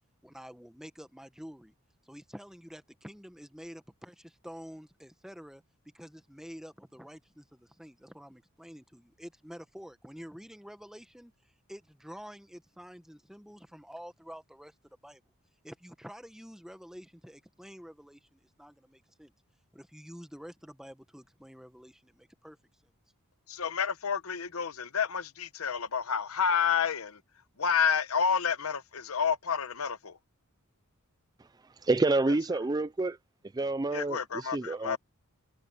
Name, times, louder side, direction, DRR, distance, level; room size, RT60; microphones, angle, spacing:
voice 1, 0.2-1.7 2.0-5.6 5.9-11.3 11.7-14.7 15.0-15.2 15.6-19.3 19.7-22.6 22.8-22.9, equal, ahead, 1.4 m, -48 dB
voice 2, 23.5-27.2 27.6-30.2 33.9-35.0, left 6 dB, 70° left, 0.9 m, -29 dB
voice 3, 31.8-33.2 33.5-35.0, right 2 dB, 15° right, 0.4 m, -28 dB
head